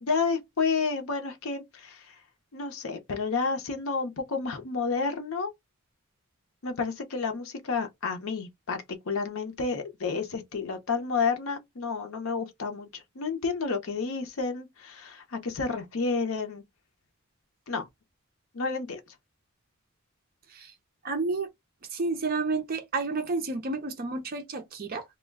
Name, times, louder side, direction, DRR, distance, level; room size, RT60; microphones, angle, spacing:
voice 1, 0.0-2.2 2.5-5.5 6.6-16.6 17.7-17.8 18.5-19.0, left 4 dB, 65° left, 0.6 m, -30 dB
voice 2, 21.0-21.5 21.9-25.0, right 3 dB, 45° right, 0.5 m, -30 dB
2.2 x 2.1 x 3.3 m
head